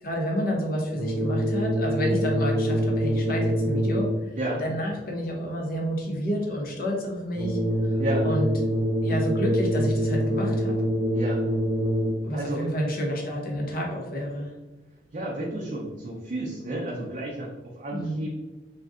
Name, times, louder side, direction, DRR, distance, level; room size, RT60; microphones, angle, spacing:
voice 1, 0.0-4.3 4.6-8.0 8.2-8.5 9.0-10.8 12.2-14.5 17.9-18.3, equal, 55° left, -1 dB, 0.7 m, -29 dB
sound 1, 0.9-4.4 7.3-12.4, equal, 85° right, 0.8 m, -25 dB
voice 2, 12.3-12.7 15.1-18.3, right 1 dB, 45° right, -4 dB, 0.5 m, -32 dB
2.5 x 2.2 x 3.6 m, 1.2 s
head